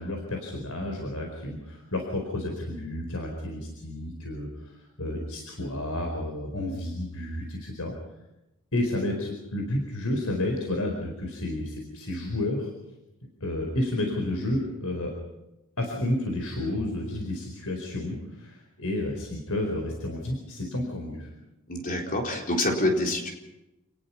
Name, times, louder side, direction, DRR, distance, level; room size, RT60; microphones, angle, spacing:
voice 1, 0.0-7.9 8.7-12.7 13.4-15.1 15.8-21.3, left 1 dB, 80° left, 3 dB, 4.6 m, -31 dB
voice 2, 21.7-23.3, left 1 dB, 40° left, 0 dB, 4.2 m, -26 dB
28.5 x 19.5 x 5.9 m, 0.95 s
head